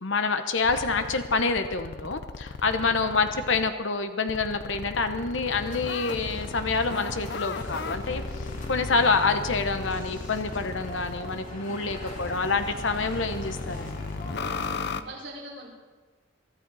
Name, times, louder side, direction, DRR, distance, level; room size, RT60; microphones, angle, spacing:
voice 1, 0.0-8.2 8.7-14.0, left 4 dB, 80° left, 8 dB, 1.1 m, -27 dB
sound 1, 0.6-3.7 4.3-11.4 11.9-15.0, left 4 dB, 60° left, 0.7 m, -36 dB
voice 2, 2.6-3.0 11.7-12.3 14.9-15.7, right 1 dB, 75° right, -7 dB, 5.3 m, -44 dB
sound 2, 5.4-14.7, left 1 dB, 45° left, 3.2 m, -41 dB
23.5 x 13.5 x 4.1 m, 1.4 s
head